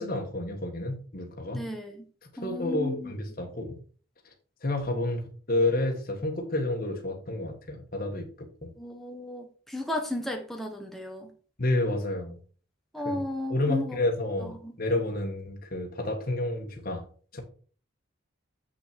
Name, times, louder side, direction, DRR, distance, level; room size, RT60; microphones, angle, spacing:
voice 1, 0.0-1.6 2.4-3.8 4.6-8.7 11.6-12.4 13.0-13.2 13.5-17.0 17.3-17.4, left 2 dB, 45° left, 1.6 m, -30 dB
voice 2, 1.5-2.0 2.4-3.1 8.8-11.3 12.9-14.0 14.4-14.7, left 1 dB, ahead, 1.1 m, -34 dB
7.6 x 5.9 x 4.5 m
head